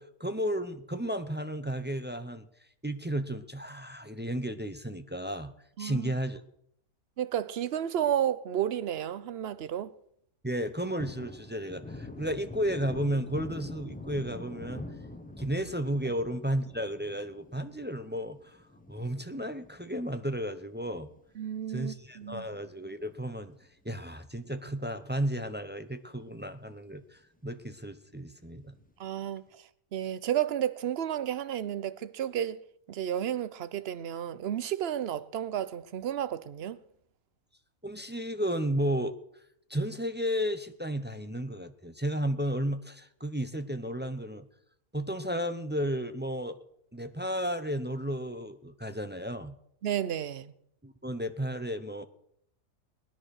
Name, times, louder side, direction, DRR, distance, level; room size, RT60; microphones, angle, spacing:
voice 1, 0.0-2.5 2.8-5.5 5.8-6.4 10.4-14.8 15.4-18.6 18.9-21.1 21.7-23.6 23.8-28.7 37.8-39.2 39.7-44.5 44.9-46.6 46.9-49.6 50.8-52.1, equal, 10° right, 0.5 m, -33 dB
voice 2, 5.8-6.1 7.2-9.9 21.4-22.5 29.0-29.6 29.9-32.6 32.9-36.8 49.8-50.5, right 10 dB, 55° right, 0.9 m, -32 dB
Thunder, 10.7-21.3 21.7-21.8 22.2-23.7 23.9-24.1 24.4-25.2 25.6-25.7 26.1-26.2 28.6-29.1, left 2 dB, 5° left, 1.0 m, -46 dB
19.5 x 10.5 x 6.5 m
omnidirectional pair, 1.5 m